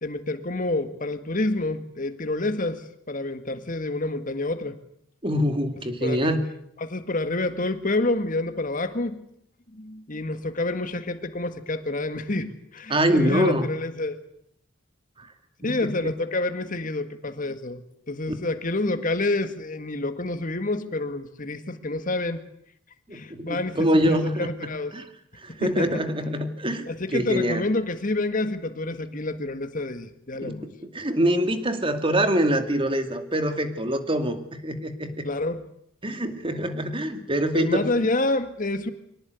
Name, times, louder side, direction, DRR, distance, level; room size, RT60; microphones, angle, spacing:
voice 1, 0.0-4.8 6.0-6.3 6.8-9.2 9.7-14.2 15.6-22.4 23.1-25.0 25.5-26.0 26.9-30.7 35.2-35.6 37.5-38.9, left 2 dB, 40° left, 9 dB, 1.9 m, -28 dB
voice 2, 5.2-6.4 12.9-13.7 15.2-15.3 15.6-16.1 18.3-18.4 23.1-24.5 24.9-25.0 25.4-27.6 30.4-35.2 36.0-38.1, equal, 25° right, 8 dB, 2.4 m, -25 dB
24.5 x 18.5 x 9.5 m, 0.74 s
head